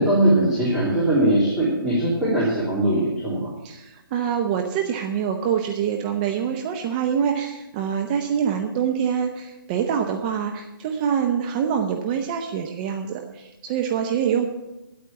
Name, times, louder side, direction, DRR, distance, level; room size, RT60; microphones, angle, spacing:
voice 1, 0.0-3.5, right 1 dB, ahead, -11 dB, 2.7 m, -20 dB
voice 2, 3.6-14.4, right 8 dB, 25° right, 4 dB, 0.7 m, -25 dB
10.5 x 8.6 x 7.0 m, 0.97 s
hypercardioid pair, 155°, 12 cm